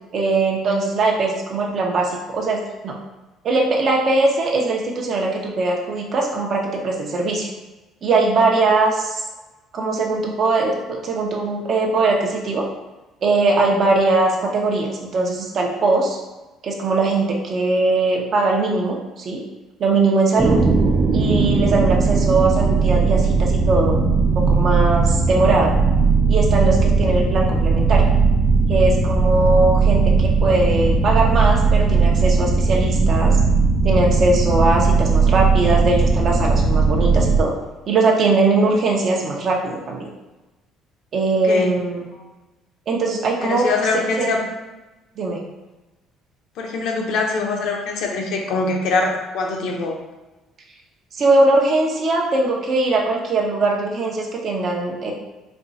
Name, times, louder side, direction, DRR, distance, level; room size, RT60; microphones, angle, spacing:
voice 1, 0.1-3.0 3.4-7.5 8.0-9.2 9.7-12.6 13.2-16.2 16.6-19.4 19.8-20.6 21.1-24.0 24.4-25.7 26.3-28.0 28.7-33.4 33.8-37.5 37.9-40.1 41.1-42.0 42.9-43.7 44.2-44.3 45.2-45.4 51.1-55.1, right 3 dB, 45° right, -1 dB, 0.8 m, -20 dB
sound 1, 20.4-37.4, right 4 dB, 20° right, 0.5 m, -17 dB
voice 2, 43.4-44.4 46.6-50.0, left 3 dB, 65° left, 1 dB, 0.8 m, -23 dB
4.4 x 2.4 x 4.0 m, 1.1 s
cardioid pair, 140°, 0 cm